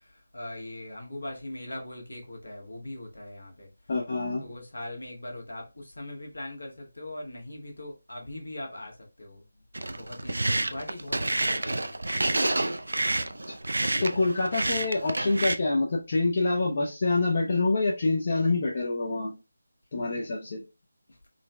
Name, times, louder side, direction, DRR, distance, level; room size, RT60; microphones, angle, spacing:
voice 1, 0.0-3.7 4.4-9.4 10.0-12.0 21.1-21.2, left 1 dB, 70° left, 1.2 m, -40 dB
voice 2, 3.9-4.4 13.5-13.6 13.8-19.3 19.9-20.6, left 3 dB, 40° left, 0.5 m, -26 dB
sound 1, 9.7-15.6, right 2 dB, 70° right, 0.3 m, -29 dB
3.8 x 2.1 x 2.2 m
figure-of-eight pair, 160°, 0 cm